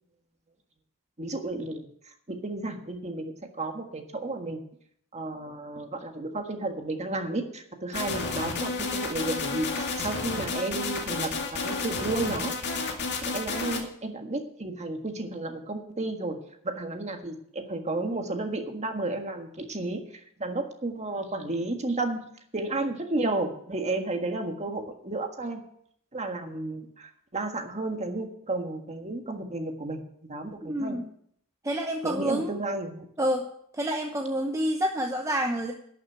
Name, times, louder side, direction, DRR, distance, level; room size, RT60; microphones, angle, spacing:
voice 1, 1.2-1.9 2.3-4.6 5.1-12.5 13.2-16.4 16.6-22.2 22.5-25.6 26.1-30.0 30.3-31.0 32.0-33.0, right 2 dB, 30° right, 4 dB, 1.6 m, -32 dB
sound 1, 7.9-13.8, left 4 dB, 50° left, 2.1 m, -31 dB
voice 2, 30.6-31.1 31.6-32.5 33.2-33.5 33.7-35.7, equal, 15° right, 2 dB, 0.9 m, -28 dB
12.0 x 6.5 x 9.0 m, 0.67 s
head